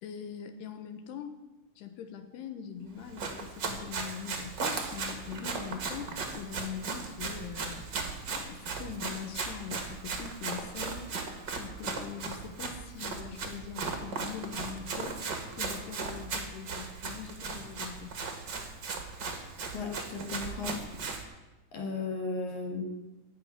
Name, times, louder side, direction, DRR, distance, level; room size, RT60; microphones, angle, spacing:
voice 1, 0.0-1.4 1.8-7.9 8.3-11.0 11.6-15.2 15.6-18.1, left 8 dB, 75° left, 8 dB, 3.2 m, -42 dB
Run, 3.0-21.2, right 4 dB, 65° right, 1.1 m, -37 dB
voice 2, 19.7-20.8 21.7-22.8, left 4 dB, 50° left, 2 dB, 3.0 m, -35 dB
16.5 x 5.8 x 9.7 m, 1.1 s
omnidirectional pair, 4.9 m